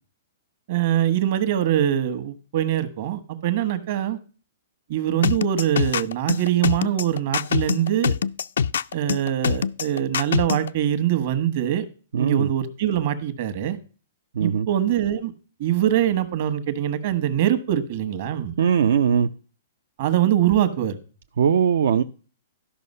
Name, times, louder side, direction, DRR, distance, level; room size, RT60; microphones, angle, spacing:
voice 1, 0.7-4.2 4.9-8.1 8.9-11.8 12.2-13.8 14.4-15.3 15.6-18.5 20.0-21.0, right 11 dB, 50° right, 1.3 m, -23 dB
sound 1, 5.2-10.7, left 7 dB, 80° left, 0.4 m, -23 dB
voice 2, 12.1-12.5 14.3-14.7 18.6-19.3 21.4-22.0, right 7 dB, 75° right, 0.6 m, -20 dB
13.0 x 5.6 x 5.5 m
hypercardioid pair, 160°, 0 cm